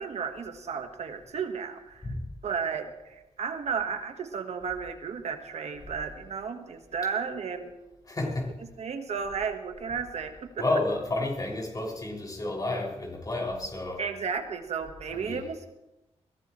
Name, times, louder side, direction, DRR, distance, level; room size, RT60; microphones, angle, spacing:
voice 1, 0.0-2.1 2.4-7.7 8.8-10.6 14.0-15.7, right 6 dB, 75° right, 6 dB, 1.5 m, -33 dB
voice 2, 8.1-8.5 10.6-14.1 15.1-15.4, left 2 dB, 30° left, -1 dB, 6.2 m, -31 dB
21.5 x 18.0 x 3.2 m, 0.95 s
wide cardioid pair, 105°, 12 cm